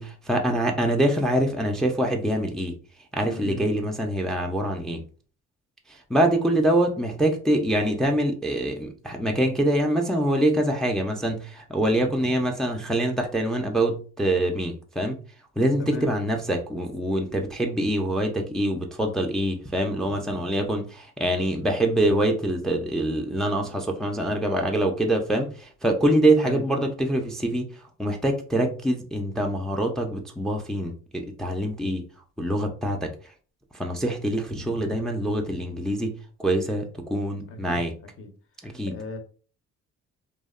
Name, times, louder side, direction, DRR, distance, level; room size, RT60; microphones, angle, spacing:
voice 1, 0.0-2.7 3.1-5.0 5.9-15.2 15.6-32.0 32.4-33.1 33.7-36.1 36.4-37.9 38.6-38.9, right 1 dB, ahead, 0.3 m, -25 dB
voice 2, 3.2-3.9 15.8-16.1 26.4-26.6 37.5-37.8 38.2-38.3 38.6-39.2, left 1 dB, 45° left, 0.6 m, -37 dB
2.7 x 2.0 x 2.4 m
cardioid pair, 90°, 30 cm